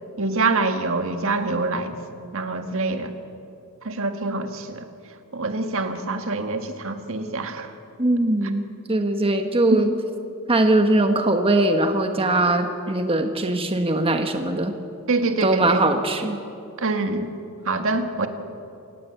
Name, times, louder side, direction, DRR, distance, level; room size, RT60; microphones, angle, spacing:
voice 1, 0.2-1.9 2.3-3.1 3.8-4.8 5.3-7.7 9.7-9.8 15.1-15.8 16.8-17.3 17.6-18.3, right 3 dB, 65° right, 6 dB, 1.8 m, -25 dB
voice 2, 8.0-9.9 10.5-14.7 15.4-16.4, right 2 dB, 25° right, 5 dB, 1.3 m, -21 dB
28.0 x 17.5 x 8.1 m, 2.6 s
head